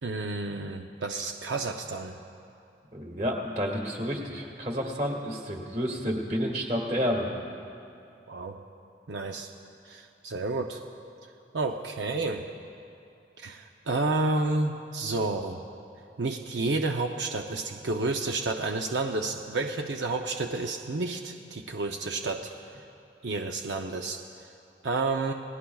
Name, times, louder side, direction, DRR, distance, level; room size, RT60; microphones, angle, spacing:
voice 1, 0.0-2.2 8.3-8.6 9.1-9.5 9.8-10.8 11.5-12.5 13.4-15.6 16.2-22.5 23.2-24.2 24.8-25.3, right 3 dB, 85° right, 3 dB, 0.6 m, -30 dB
voice 2, 2.9-7.3, equal, 40° right, 1 dB, 1.9 m, -30 dB
28.5 x 18.0 x 2.3 m, 2.6 s
head